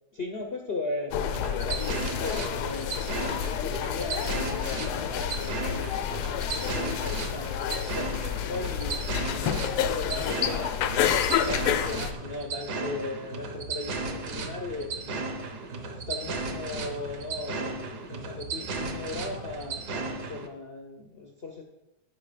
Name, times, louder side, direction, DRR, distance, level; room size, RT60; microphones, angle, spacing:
voice 1, 0.1-1.2 1.6-3.0 3.6-6.0 6.6-10.7 11.3-15.3 16.1-21.6, left 3 dB, 65° left, 2 dB, 0.6 m, -37 dB
sound 1, 1.1-12.1, left 9 dB, 85° left, 1.6 m, -29 dB
sound 2, 1.3-20.5, right 3 dB, 55° right, 1.5 m, -35 dB
14.5 x 5.2 x 5.1 m, 0.96 s
omnidirectional pair, 2.4 m